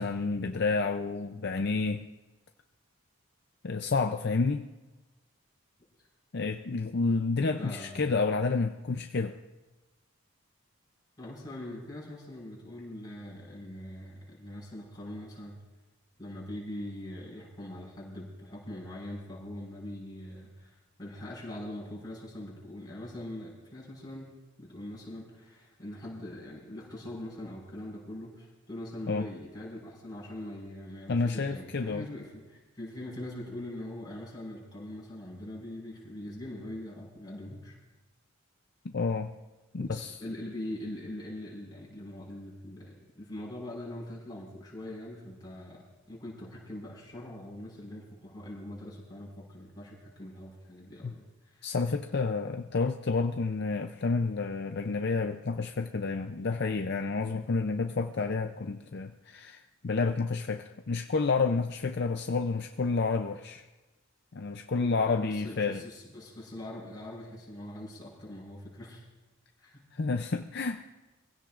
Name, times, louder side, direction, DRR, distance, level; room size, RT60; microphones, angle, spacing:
voice 1, 0.0-2.1 3.6-4.7 6.3-9.4 29.1-29.3 31.1-32.1 38.8-39.3 39.7-40.2 51.0-51.1 51.6-63.6 64.3-65.8 69.9-70.8, left 4 dB, 50° left, 6 dB, 0.5 m, -30 dB
voice 2, 7.6-8.0 11.2-15.6 16.2-37.8 39.8-51.8 64.7-69.1 69.6-69.9, left 1 dB, 20° left, -4 dB, 5.4 m, -42 dB
23.5 x 16.0 x 2.5 m, 1.1 s
head